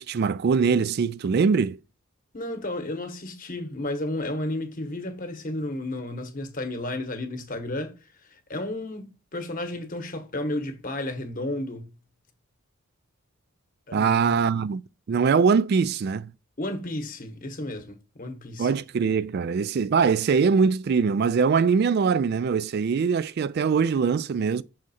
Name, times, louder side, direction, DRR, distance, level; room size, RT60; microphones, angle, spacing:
voice 1, 0.0-1.8 13.9-14.8 15.1-16.3 18.6-24.6, right 5 dB, 50° right, 0.3 m, -22 dB
voice 2, 2.3-11.9 13.9-14.4 16.6-18.7, left 1 dB, 40° left, 1.0 m, -32 dB
6.4 x 3.6 x 4.1 m
head